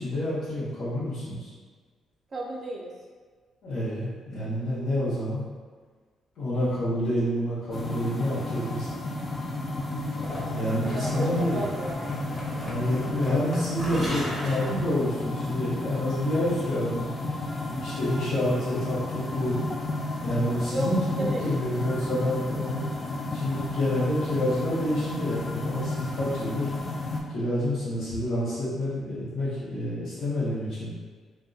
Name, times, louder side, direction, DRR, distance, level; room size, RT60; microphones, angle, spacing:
voice 1, 0.0-1.5 3.6-5.4 6.4-8.9 10.5-11.6 12.7-17.1 17.6-19.6 20.2-22.8 23.3-26.7 27.3-30.9, left 1 dB, 70° left, -11 dB, 0.8 m, -28 dB
voice 2, 2.3-2.9 10.8-12.0 20.7-20.9 21.2-21.5, right 1 dB, 45° right, -2 dB, 0.3 m, -32 dB
sound 1, 7.7-27.2, left 2 dB, 35° left, 0.3 m, -32 dB
sound 2, 10.2-15.5, equal, 5° left, 1.0 m, -37 dB
2.6 x 2.1 x 2.3 m, 1.5 s
cardioid pair, 90°, 0 cm